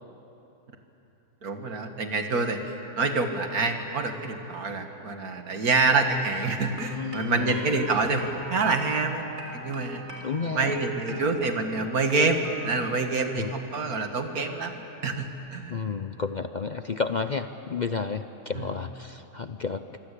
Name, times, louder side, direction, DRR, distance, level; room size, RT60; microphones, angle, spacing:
voice 1, 1.4-10.0 10.4-15.8 18.5-18.7, right 3 dB, 85° right, 5 dB, 2.4 m, -27 dB
sound 1, 6.7-12.7, right 2 dB, 65° right, 4.2 m, -42 dB
voice 2, 6.9-7.6 10.2-10.8 11.1-11.2 13.4-13.5 15.7-19.8, left 5 dB, 45° left, 9 dB, 0.6 m, -31 dB
25.5 x 25.0 x 8.4 m, 3.0 s
omnidirectional pair, 1.5 m